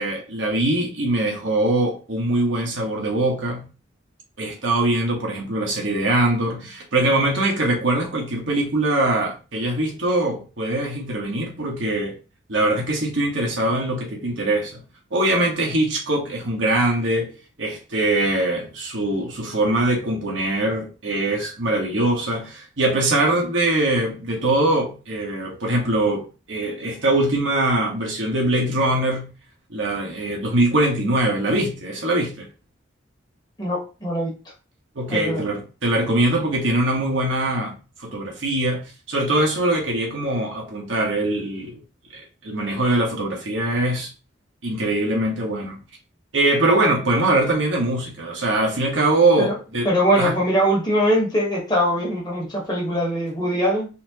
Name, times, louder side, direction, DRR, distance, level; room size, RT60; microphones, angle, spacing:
voice 1, 0.0-3.7 4.4-12.2 12.5-14.8 15.1-17.3 17.6-29.3 29.7-32.5 34.9-41.7 42.1-44.1 44.6-45.8 46.3-49.9 50.2-50.3, right 1 dB, 85° right, 0 dB, 1.3 m, -22 dB
voice 2, 33.6-34.3 35.1-35.4 49.4-49.6 49.8-53.9, equal, 20° left, -2 dB, 1.3 m, -22 dB
4.2 x 2.9 x 2.9 m, 0.32 s
head